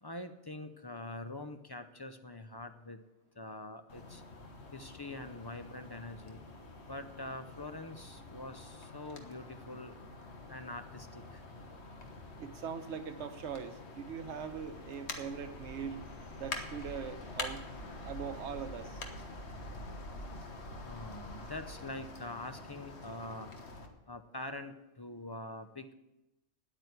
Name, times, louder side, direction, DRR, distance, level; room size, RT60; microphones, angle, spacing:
voice 1, 0.0-3.0 3.4-4.2 4.7-6.4 6.9-10.0 10.5-11.4 20.8-23.6 24.1-25.9, left 2 dB, 25° left, 8 dB, 0.5 m, -44 dB
sound 1, 3.9-23.9, left 2 dB, 60° left, 1.5 m, -46 dB
voice 2, 12.4-16.0 16.4-17.6 18.0-19.0, right 7 dB, 70° right, 9 dB, 1.2 m, -41 dB
9.8 x 8.9 x 8.2 m, 0.97 s
omnidirectional pair, 1.3 m